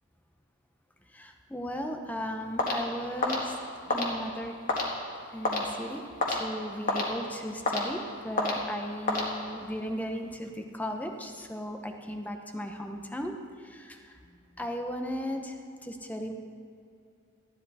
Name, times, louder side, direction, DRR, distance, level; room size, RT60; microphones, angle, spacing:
voice 1, 1.1-3.6 3.9-4.5 5.3-6.0 6.3-15.6 15.8-16.3, equal, 5° left, 4 dB, 0.8 m, -36 dB
sound 1, 2.6-9.8, left 2 dB, 40° left, 1.7 m, -32 dB
14.5 x 10.5 x 4.2 m, 2.5 s
head